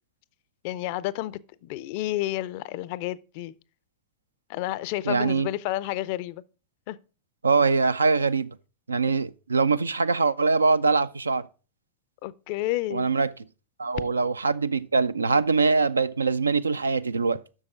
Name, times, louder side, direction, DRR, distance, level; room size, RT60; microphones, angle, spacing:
voice 1, 0.6-3.6 4.5-6.4 6.9-7.0 12.2-13.1, left 16 dB, 45° left, 0.4 m, -30 dB
voice 2, 5.1-5.5 7.4-8.5 8.9-11.5 12.9-13.3 13.8-17.4, right 4 dB, 75° right, 0.3 m, -23 dB
7.3 x 6.4 x 5.0 m
figure-of-eight pair, 90°, 0 cm